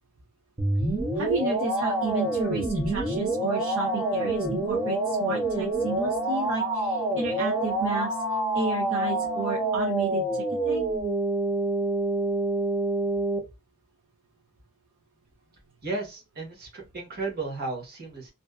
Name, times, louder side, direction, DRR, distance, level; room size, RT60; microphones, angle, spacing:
sound 1, 0.6-13.4, right 2 dB, 15° right, 0.4 m, -27 dB
voice 1, 1.2-8.2 8.5-10.9, right 4 dB, 60° right, -1 dB, 0.6 m, -32 dB
Wind instrument woodwind instrument, 1.5-10.0, left 6 dB, 80° left, 0.3 m, -39 dB
voice 2, 15.8-18.3, right 3 dB, 45° right, 0 dB, 1.1 m, -34 dB
2.6 x 2.2 x 2.3 m, 0.25 s
head